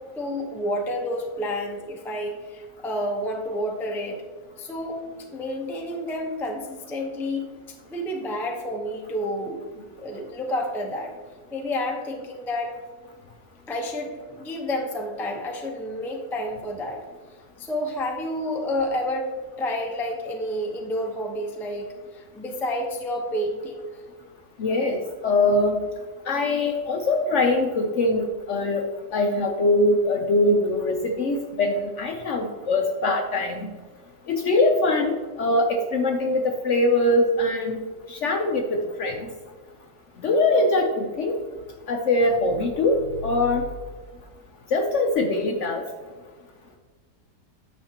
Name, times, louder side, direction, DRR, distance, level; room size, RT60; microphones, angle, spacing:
voice 1, 0.2-4.2 4.6-5.0 5.3-7.5 7.9-9.6 10.0-11.1 11.5-12.8 13.7-17.0 17.6-19.3 19.6-23.9, left 1 dB, ahead, 1 dB, 0.4 m, -29 dB
voice 2, 24.6-25.8 26.3-28.8 29.1-33.7 34.3-37.8 38.1-39.2 40.2-41.4 41.9-43.6 44.7-45.8, left 2 dB, 60° left, 3 dB, 0.8 m, -22 dB
9.2 x 6.3 x 2.9 m, 1.5 s
omnidirectional pair, 1.7 m